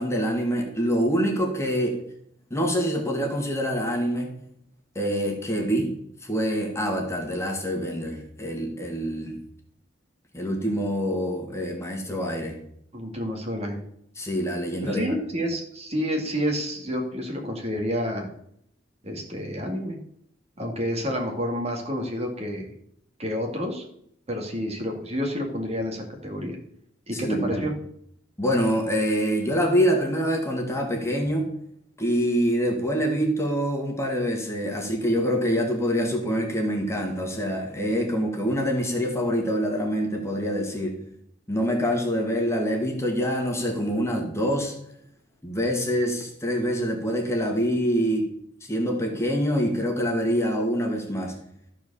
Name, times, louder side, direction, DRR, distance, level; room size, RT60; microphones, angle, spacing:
voice 1, 0.0-2.0 2.5-4.3 5.0-5.9 6.2-9.4 10.3-12.5 14.2-15.1 27.1-27.7 28.4-31.5 32.0-41.0 41.5-44.7 45.4-48.3 48.6-51.4, equal, 15° left, 1 dB, 1.8 m, -25 dB
voice 2, 12.9-13.8 14.8-18.3 19.0-20.0 20.6-22.7 23.2-23.8 24.3-26.6 27.1-27.7, equal, 35° right, 2 dB, 2.1 m, -29 dB
13.5 x 4.7 x 6.9 m, 0.70 s
head